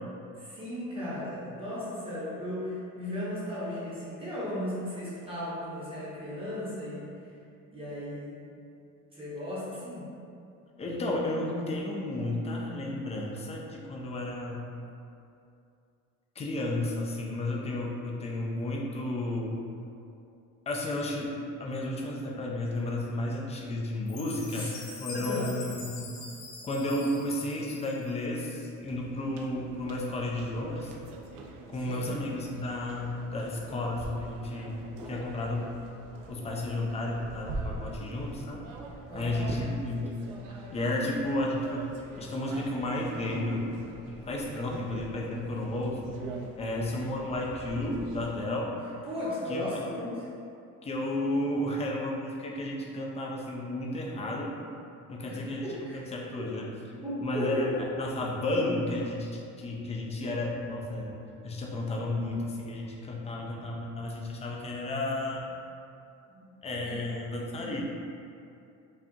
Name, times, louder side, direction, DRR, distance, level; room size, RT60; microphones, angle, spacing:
voice 1, 0.4-7.2 7.7-8.4 9.1-10.1 24.5-24.7 25.1-25.5 31.8-32.1 39.1-39.4 49.0-50.2 55.3-56.0 56.4-56.5 56.9-57.8 66.3-67.0 67.6-67.7, left 1 dB, 15° right, -8 dB, 0.8 m, -36 dB
voice 2, 10.8-14.6 16.4-19.6 20.7-24.7 25.0-26.1 26.6-30.9 31.7-35.7 36.3-38.6 39.1-40.1 40.7-43.7 44.1-46.1 46.6-48.7 49.5-49.8 50.8-54.5 55.1-56.7 57.2-57.7 58.0-61.1 61.4-65.4 66.6-67.8, left 1 dB, 20° left, -2 dB, 0.3 m, -32 dB
Chime, 24.1-28.3, left 4 dB, 65° left, 0.8 m, -44 dB
sound 1, 28.9-48.3, right 2 dB, 85° right, 0.5 m, -44 dB
5.0 x 2.4 x 2.7 m, 2.6 s
cardioid pair, 160°, 31 cm